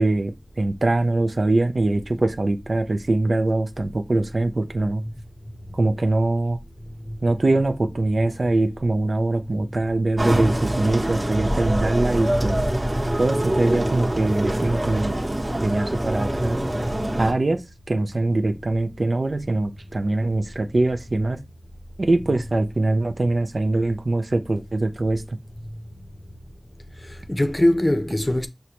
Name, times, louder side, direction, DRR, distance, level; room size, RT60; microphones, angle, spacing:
voice 1, 0.0-5.0 5.7-6.6 7.2-12.6 13.2-15.2 15.6-16.6 17.2-17.6 17.9-21.4 22.0-25.2, right 2 dB, 80° right, 0.4 m, -22 dB
sound 1, 10.2-17.3, right 1 dB, 45° right, 1.0 m, -24 dB
voice 2, 27.0-28.5, left 1 dB, 35° left, 0.6 m, -22 dB
6.3 x 2.1 x 2.8 m
wide cardioid pair, 50°, 0 cm